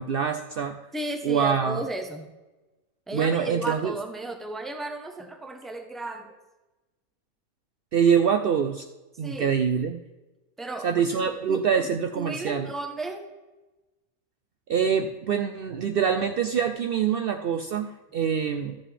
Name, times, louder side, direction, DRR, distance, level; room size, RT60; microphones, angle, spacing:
voice 1, 0.0-0.8 1.2-1.8 3.1-3.9 7.9-8.8 9.2-10.0 10.8-12.7 14.7-18.8, right 7 dB, 85° right, 6 dB, 0.5 m, -25 dB
voice 2, 0.9-2.3 3.1-6.4 9.2-9.5 10.6-11.9 12.2-13.3, right 2 dB, ahead, 5 dB, 0.6 m, -34 dB
13.0 x 7.4 x 3.3 m, 1.1 s
omnidirectional pair, 1.5 m